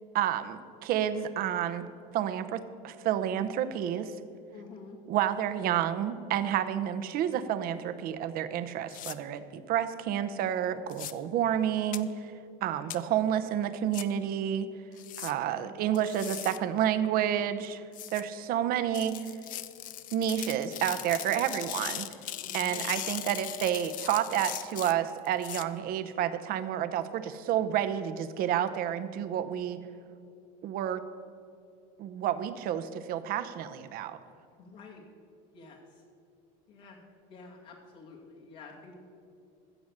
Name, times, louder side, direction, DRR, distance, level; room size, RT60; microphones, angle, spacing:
voice 1, 0.1-1.9 2.1-4.1 5.1-12.3 12.6-14.7 15.2-17.8 18.1-19.1 20.1-22.1 22.5-29.8 30.6-31.0 32.0-34.2, right 10 dB, 55° right, 11 dB, 0.8 m, -30 dB
voice 2, 4.5-5.0 12.7-13.0 15.5-16.0 22.4-22.9 34.6-35.1 35.5-35.8 36.7-39.0, left 4 dB, 65° left, -3 dB, 2.4 m, -49 dB
sound 1, 8.9-9.2 10.9-11.1 11.9-12.0 12.9-13.0 13.9-14.0 15.0-15.3 16.0-16.6 17.9-18.2 18.9-25.6, left 13 dB, 45° left, 0.6 m, -39 dB
15.0 x 7.0 x 6.5 m, 2.5 s
supercardioid pair, 115°, 18 cm